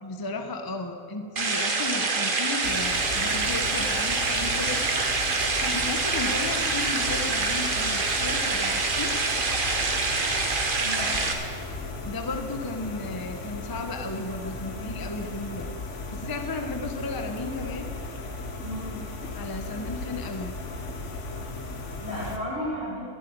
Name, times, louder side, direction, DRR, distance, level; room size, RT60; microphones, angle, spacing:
voice 1, 0.0-4.8 5.6-9.1 12.0-15.7 16.1-17.9 19.3-20.6, left 3 dB, 20° left, 5 dB, 0.7 m, -34 dB
sound 1, 1.4-11.3, right 3 dB, 40° right, 1.3 m, -26 dB
sound 2, 2.6-22.4, left 2 dB, 55° left, 1.4 m, -36 dB
voice 2, 10.8-11.3 18.6-19.0 22.0-23.0, equal, 40° left, -8 dB, 4.5 m, -34 dB
12.0 x 8.3 x 9.4 m, 2.3 s
omnidirectional pair, 1.5 m